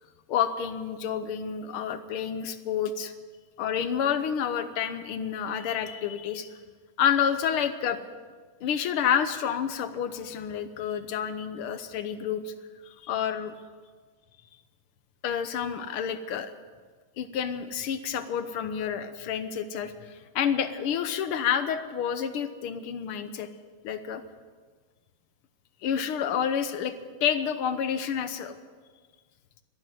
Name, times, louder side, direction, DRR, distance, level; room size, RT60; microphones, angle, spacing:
voice 1, 0.3-3.1 3.6-6.5 7.0-8.0 8.6-12.5 12.9-13.5 15.2-16.5 17.2-23.5 23.8-24.2 25.8-26.9 27.2-28.6, left 8 dB, 85° left, 10 dB, 1.9 m, -29 dB
12.5 x 12.0 x 9.1 m, 1.5 s
omnidirectional pair, 2.3 m